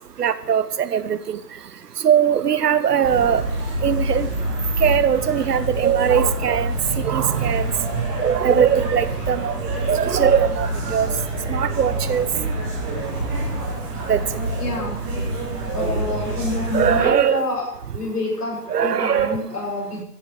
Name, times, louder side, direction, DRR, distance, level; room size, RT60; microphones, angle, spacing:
voice 1, 0.2-1.4 2.0-3.4 3.8-4.3 4.8-7.7 8.0-11.1 11.5-12.3 14.1-14.2 15.7-15.9 16.7-17.5 18.7-19.4, right 8 dB, 75° right, 15 dB, 1.0 m, -20 dB
sound 1, 3.0-17.0, right 1 dB, 5° right, 0.4 m, -26 dB
voice 2, 14.6-15.0 15.7-17.6 17.9-20.1, left 2 dB, 70° left, -2 dB, 6.7 m, -27 dB
14.0 x 7.4 x 6.8 m, 0.77 s
hypercardioid pair, 130°, 48 cm